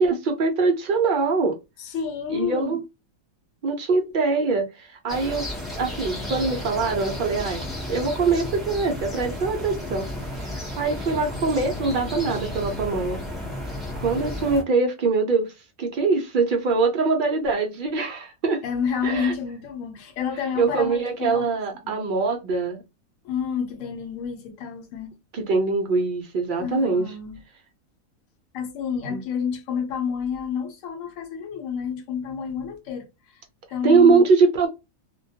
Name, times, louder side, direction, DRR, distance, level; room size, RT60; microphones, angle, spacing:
voice 1, 0.0-1.6 2.3-2.8 3.6-5.5 5.8-13.2 14.0-15.5 15.8-18.6 19.0-19.3 20.6-22.8 25.3-27.1 29.1-29.2 33.8-34.7, right 4 dB, 80° right, 0.4 m, -23 dB
voice 2, 1.8-2.8 18.6-21.5 21.8-22.0 23.2-25.1 26.6-27.4 28.5-33.1 33.7-34.2, left 7 dB, 75° left, 1.0 m, -29 dB
sound 1, 5.1-14.6, left 1 dB, ahead, 0.3 m, -33 dB
2.2 x 2.1 x 2.6 m
omnidirectional pair, 1.5 m